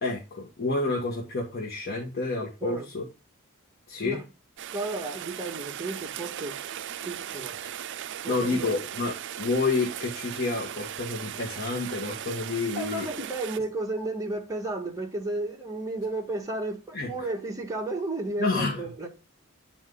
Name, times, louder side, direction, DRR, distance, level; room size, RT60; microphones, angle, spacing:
voice 1, 0.0-3.0 3.9-4.2 8.3-13.1 16.9-17.3 18.4-18.9, left 3 dB, 50° left, 1.5 m, -29 dB
Rain, 4.6-13.6, right 10 dB, 60° right, 0.4 m, -38 dB
voice 2, 4.7-6.6 7.0-7.6 8.2-8.7 12.7-19.1, right 2 dB, 15° right, 1.7 m, -33 dB
9.3 x 4.6 x 3.8 m
head